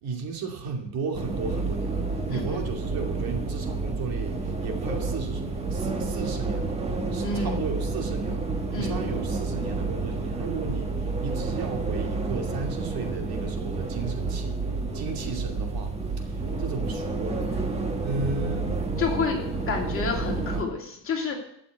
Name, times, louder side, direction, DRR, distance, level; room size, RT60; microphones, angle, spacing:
voice 1, 0.0-5.4 5.7-6.8 7.1-14.6 14.9-15.9 16.2-17.5 18.0-18.7, right 4 dB, 55° right, 3 dB, 2.6 m, -34 dB
sound 1, 1.1-20.6, right 3 dB, 15° right, 1.4 m, -30 dB
voice 2, 2.3-2.6 7.2-7.6 8.7-9.0 19.0-19.4 19.7-21.4, left 4 dB, 30° left, 0 dB, 2.8 m, -29 dB
12.5 x 7.0 x 8.1 m, 0.71 s
cardioid pair, 155°, 42 cm